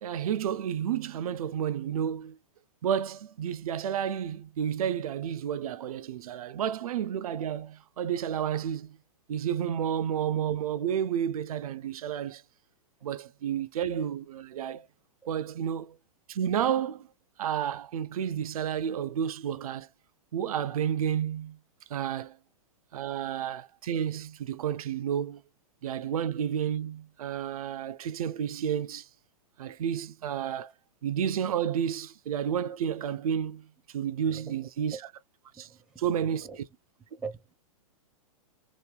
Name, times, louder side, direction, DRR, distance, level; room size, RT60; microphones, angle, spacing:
voice 1, 0.0-2.4 2.8-9.0 9.3-12.4 13.0-14.9 15.3-16.0 16.3-17.1 17.4-19.9 20.3-21.6 21.9-22.4 22.9-25.4 25.8-29.1 29.6-30.7 31.0-35.0 35.6-35.7 36.0-36.5, right 9 dB, 75° right, 0.4 m, -31 dB
voice 2, 34.3-35.0 35.6-36.6 37.1-37.5, right 5 dB, 5° right, 0.6 m, -43 dB
2.9 x 2.1 x 3.3 m
hypercardioid pair, 120°, 18 cm